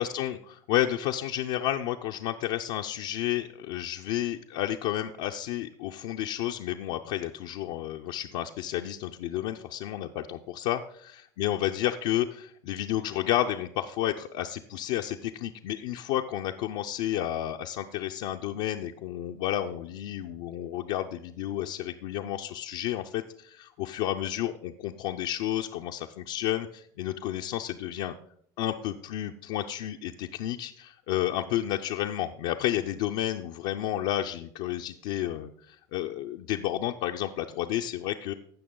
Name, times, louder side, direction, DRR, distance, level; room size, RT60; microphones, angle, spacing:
voice 1, 0.0-28.1 28.6-38.3, left 12 dB, 75° left, 2 dB, 0.5 m, -31 dB
15.5 x 5.9 x 3.7 m, 0.66 s
hypercardioid pair, 75°, 10 cm